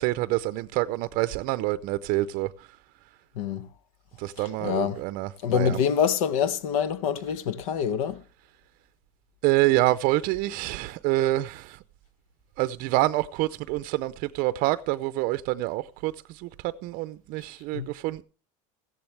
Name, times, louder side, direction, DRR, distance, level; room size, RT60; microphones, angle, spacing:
voice 1, 0.0-2.5 4.2-5.8 9.4-11.8 12.6-18.2, right 17 dB, 55° right, 0.5 m, -27 dB
voice 2, 3.4-3.7 4.4-5.0 5.4-8.2 17.7-17.9, left 8 dB, 85° left, 0.9 m, -26 dB
15.0 x 10.5 x 3.2 m
supercardioid pair, 125°, 17 cm